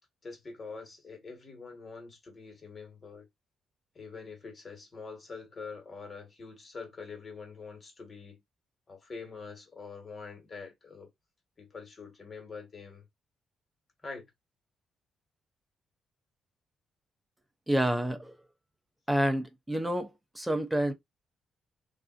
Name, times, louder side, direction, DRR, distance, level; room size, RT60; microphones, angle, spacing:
voice 1, 0.2-3.3 3.9-8.4 8.9-11.1 11.6-13.0 14.0-14.3, left 4 dB, 30° left, 1.3 m, -45 dB
voice 2, 17.7-18.3 19.1-20.1 20.4-20.9, right 1 dB, 5° right, 0.5 m, -28 dB
3.4 x 2.4 x 2.4 m
cardioid pair, 135°, 0 cm